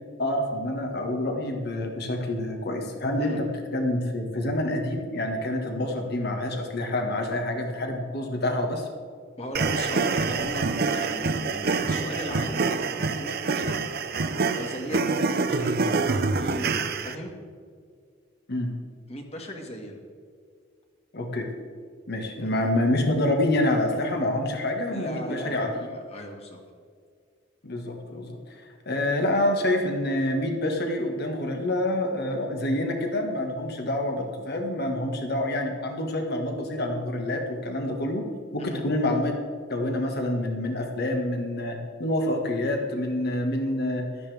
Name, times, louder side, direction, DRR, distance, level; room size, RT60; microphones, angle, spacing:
voice 1, 0.2-8.9 18.5-18.8 21.1-21.5 22.1-25.7 27.6-38.2 38.5-39.3 39.7-44.1, left 1 dB, 55° left, 3 dB, 1.6 m, -27 dB
voice 2, 9.4-13.9 14.5-17.3 19.1-20.0 22.4-22.5 24.9-26.6 38.6-38.8, equal, 35° left, 2 dB, 1.9 m, -37 dB
sound 1, 9.5-17.1, right 4 dB, 55° right, 0.7 m, -26 dB
16.5 x 12.5 x 3.5 m, 2.1 s
head